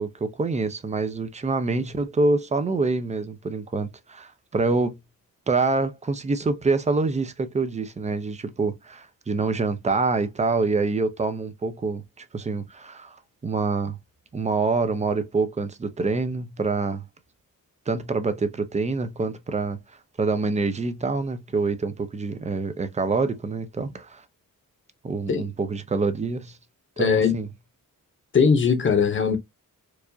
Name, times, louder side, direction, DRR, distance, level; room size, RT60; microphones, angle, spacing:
voice 1, 0.0-5.0 5.5-13.2 13.4-14.0 14.3-17.0 17.9-19.8 20.2-24.2 25.0-26.6 27.0-27.5, right 3 dB, 20° right, 0.5 m, -26 dB
voice 2, 27.0-27.4 28.3-29.4, left 6 dB, 35° left, 0.8 m, -20 dB
4.6 x 2.4 x 2.6 m
wide cardioid pair, 170°, 33 cm